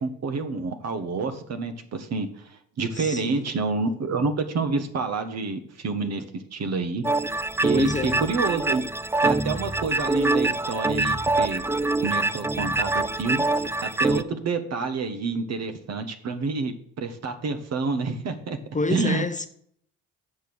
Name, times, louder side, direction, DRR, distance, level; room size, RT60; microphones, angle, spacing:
voice 1, 0.0-6.2 6.5-7.0 7.6-8.8 9.2-11.6 12.0-13.4 13.8-18.6 18.9-19.2, right 4 dB, 55° right, 1.5 m, -28 dB
voice 2, 2.9-3.5 7.7-8.2 18.7-19.5, left 3 dB, 25° left, 0.8 m, -28 dB
sound 1, 7.0-14.2, right 2 dB, 10° right, 0.4 m, -25 dB
7.3 x 6.9 x 6.3 m
hypercardioid pair, 55°, 32 cm